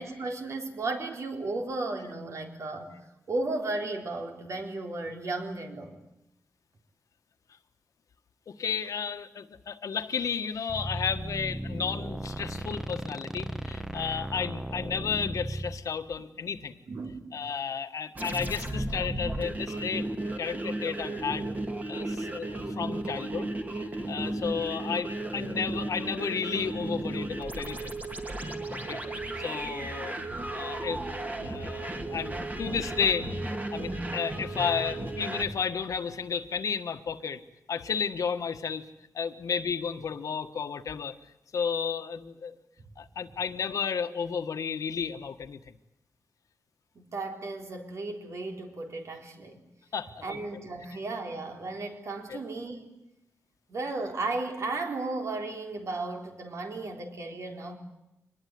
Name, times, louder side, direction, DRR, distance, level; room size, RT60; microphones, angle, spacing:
voice 1, 0.0-2.9 3.3-6.0 16.9-17.3 46.9-49.6 50.2-53.0 53.7-57.8, right 2 dB, 60° right, 3 dB, 4.1 m, -34 dB
voice 2, 8.5-16.8 17.3-20.1 20.4-21.5 21.9-23.5 23.8-28.0 28.7-29.0 29.4-30.2 30.5-33.3 33.7-37.4 37.7-38.9 39.1-41.2 41.5-42.6 43.0-45.7 49.9-50.4 52.3-52.4, left 6 dB, 80° left, 10 dB, 1.5 m, -32 dB
sound 1, 10.7-15.8, right 1 dB, 10° right, 1.0 m, -36 dB
sound 2, 18.2-35.5, right 2 dB, 30° right, 2.7 m, -34 dB
24.5 x 20.5 x 9.5 m, 0.88 s
wide cardioid pair, 130°, 6 cm